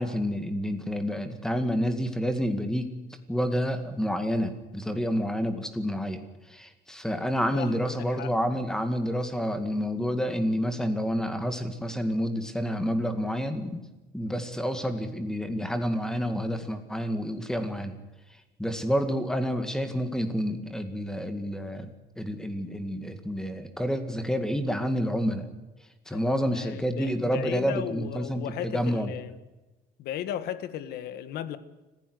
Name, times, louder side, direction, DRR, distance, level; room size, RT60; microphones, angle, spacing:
voice 1, 0.0-2.9 3.3-6.2 6.5-13.8 14.1-17.9 18.6-21.9 22.2-25.5 26.1-29.1, equal, 5° left, 2.1 m, -29 dB
voice 2, 7.5-8.3 26.1-29.4 30.0-31.6, left 10 dB, 75° left, 1.6 m, -36 dB
26.0 x 15.5 x 8.0 m
cardioid pair, 160°, 16 cm